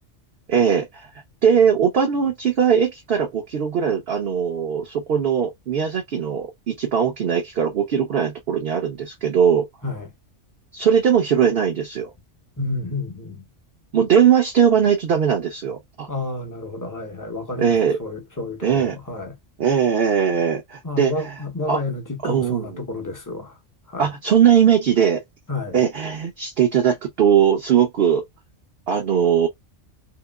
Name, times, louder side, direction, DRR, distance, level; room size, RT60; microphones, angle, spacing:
voice 1, 0.5-1.1 1.4-9.7 10.7-12.1 13.9-16.1 17.6-18.0 18.6-19.0 19.6-21.4 21.7-21.8 22.2-22.8 24.0-25.2 25.7-28.2 28.9-29.5, right 8 dB, 60° right, 0.9 m, -20 dB
voice 2, 12.6-13.4 16.1-17.7 18.0-19.3 20.8-23.5 23.9-24.1 25.5-25.8, left 2 dB, 20° left, 0.6 m, -30 dB
2.9 x 2.9 x 2.2 m
omnidirectional pair, 1.2 m